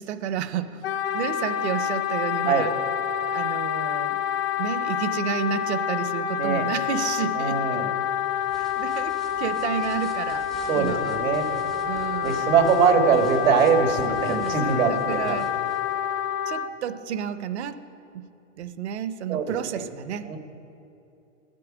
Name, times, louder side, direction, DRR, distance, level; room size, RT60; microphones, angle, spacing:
voice 1, 0.0-2.7 3.3-4.2 4.6-7.8 8.6-10.5 10.7-11.2 11.9-12.5 14.1-15.5 16.5-17.8 18.1-18.3 18.6-20.4, right 8 dB, 60° right, 13 dB, 0.7 m, -31 dB
Wind instrument woodwind instrument, 0.8-16.7, left 9 dB, 45° left, 0.6 m, -28 dB
voice 2, 7.4-7.9 10.7-11.5 12.2-15.4 16.0-16.1 19.3-19.8 20.3-20.4, right 6 dB, 90° right, 5 dB, 1.8 m, -22 dB
sound 1, 8.2-15.9, left 1 dB, ahead, 0.4 m, -47 dB
13.5 x 11.5 x 4.9 m, 2.7 s
supercardioid pair, 175°, 39 cm